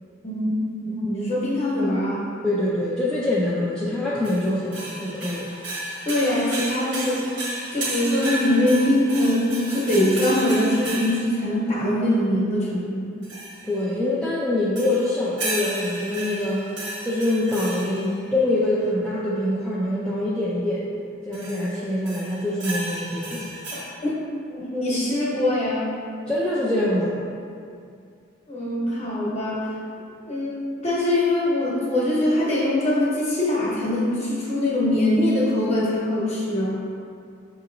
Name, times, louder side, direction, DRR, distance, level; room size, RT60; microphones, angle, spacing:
voice 1, 0.2-0.6 0.8-2.2 6.0-7.3 7.7-13.1 23.7-24.2 24.5-25.9 28.5-29.7 30.3-36.8, left 1 dB, 35° left, -7 dB, 1.0 m, -23 dB
voice 2, 2.4-5.5 13.6-16.6 17.0-20.8 21.2-23.5 26.3-27.3, left 1 dB, 5° left, -9 dB, 0.3 m, -24 dB
sound 1, 4.2-11.4 13.2-13.8 14.8-18.2 21.3-21.7 22.1-23.8, right 2 dB, 65° right, 1.0 m, -33 dB
6.4 x 2.9 x 2.5 m, 2.4 s
head